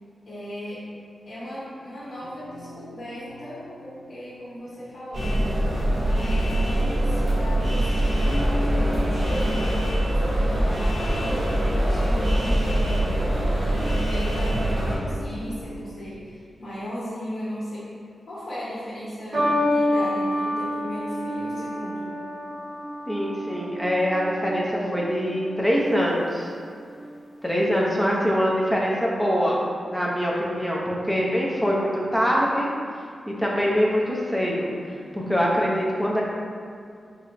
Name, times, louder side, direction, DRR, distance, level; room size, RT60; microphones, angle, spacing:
voice 1, 0.2-0.9 1.3-5.6 6.0-9.7 10.0-12.9 13.6-17.9 18.3-22.1, equal, 70° left, -11 dB, 1.1 m, -36 dB
sound 1, 2.0-13.8 14.9-16.1, equal, 90° left, 0.7 m, -41 dB
sound 2, 5.1-15.0, right 1 dB, 55° right, 1.2 m, -23 dB
sound 3, 19.3-25.8 26.7-27.1, left 1 dB, 30° right, 1.5 m, -28 dB
voice 2, 23.1-26.5 27.4-29.6 29.9-32.7 33.4-34.7 35.1-36.2, equal, ahead, -4 dB, 0.6 m, -23 dB
3.9 x 2.1 x 4.3 m, 2.2 s
wide cardioid pair, 135°, 0 cm